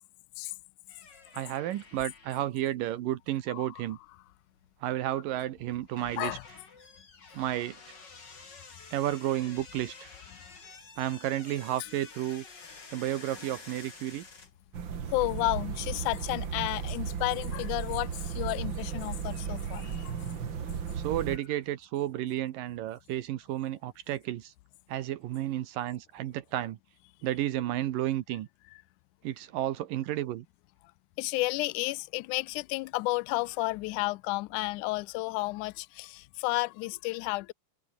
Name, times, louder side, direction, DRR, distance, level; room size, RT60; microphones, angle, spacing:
sound 1, 0.9-18.2, left 4 dB, 30° left, 3.7 m, -52 dB
voice 1, 1.3-4.0 4.8-6.4 7.3-7.8 8.9-10.1 11.0-12.4 12.9-14.3 20.9-24.5 24.9-26.8 27.2-28.5 29.2-30.5, right 13 dB, 80° right, 2.8 m, -32 dB
voice 2, 3.5-3.8 6.2-6.4 15.1-20.3 31.2-37.5, left 22 dB, 75° left, 2.0 m, -32 dB
sound 2, 14.7-21.4, right 7 dB, 40° right, 2.1 m, -35 dB
omnidirectional pair, 3.9 m